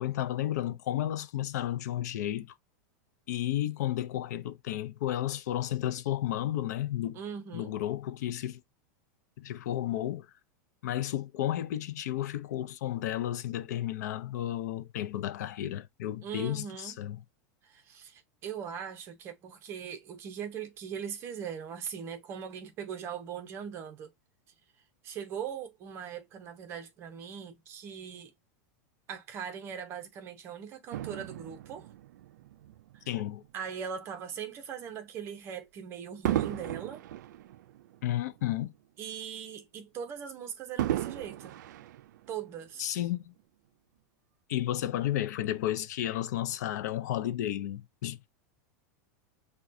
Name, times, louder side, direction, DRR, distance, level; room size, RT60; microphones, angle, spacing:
voice 1, 0.0-2.5 3.3-7.2 7.5-8.6 9.4-10.3 10.8-17.2 33.1-33.4 38.0-38.7 42.8-43.3 44.5-48.2, left 12 dB, 70° left, 0.5 m, -32 dB
voice 2, 7.1-7.7 16.2-17.0 17.6-24.1 25.0-28.3 29.1-31.9 32.9-33.1 33.5-37.0 39.0-41.6 42.3-43.0, right 8 dB, 25° right, 0.7 m, -40 dB
Fireworks, 30.9-33.5 34.2-34.4 36.2-38.8 39.1-39.2 40.8-42.7 43.4-43.5, right 13 dB, 85° right, 0.3 m, -35 dB
5.9 x 2.2 x 2.6 m
supercardioid pair, 170°, 10 cm